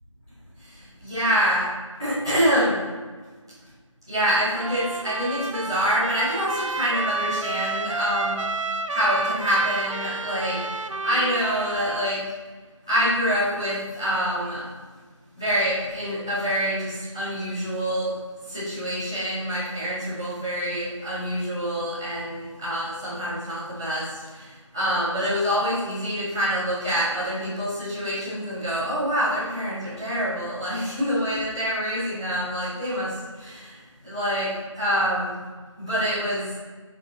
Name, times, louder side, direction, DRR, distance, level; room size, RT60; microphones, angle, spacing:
voice 1, 0.6-1.7 2.0-2.8 4.1-8.4 8.9-12.2 12.9-14.7 15.3-35.4 35.8-36.5, equal, 10° right, -16 dB, 1.6 m, -26 dB
Trumpet, 4.5-12.1, right 3 dB, 70° right, 0.5 m, -30 dB
7.8 x 6.6 x 2.8 m, 1.4 s
figure-of-eight pair, 180°, 17 cm